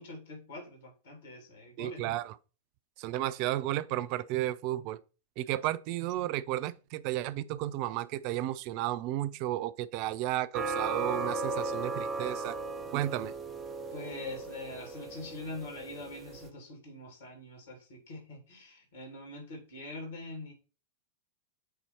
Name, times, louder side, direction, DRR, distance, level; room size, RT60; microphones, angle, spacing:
voice 1, 0.0-2.2 13.9-20.5, left 2 dB, 60° left, 2.3 m, -44 dB
voice 2, 1.8-2.3 3.0-5.0 5.4-12.5 12.9-13.3, right 14 dB, 45° right, 0.4 m, -33 dB
sound 1, 10.5-16.5, right 3 dB, 20° right, 0.9 m, -36 dB
7.9 x 2.8 x 4.3 m
figure-of-eight pair, 90°, 0 cm